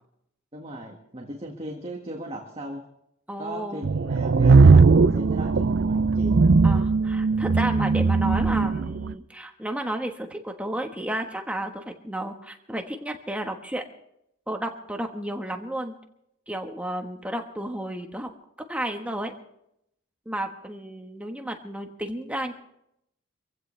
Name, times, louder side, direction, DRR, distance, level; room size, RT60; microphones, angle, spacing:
voice 1, 0.5-2.8 3.4-6.4, right 1 dB, 30° right, 0 dB, 1.8 m, -37 dB
voice 2, 3.3-3.9 6.6-13.8 14.5-15.9 16.5-18.3 18.7-19.3 20.2-22.5, right 1 dB, 5° right, 4 dB, 1.3 m, -32 dB
sound 1, 3.8-9.1, right 4 dB, 55° right, 0.5 m, -19 dB
25.5 x 15.5 x 3.3 m, 0.77 s
head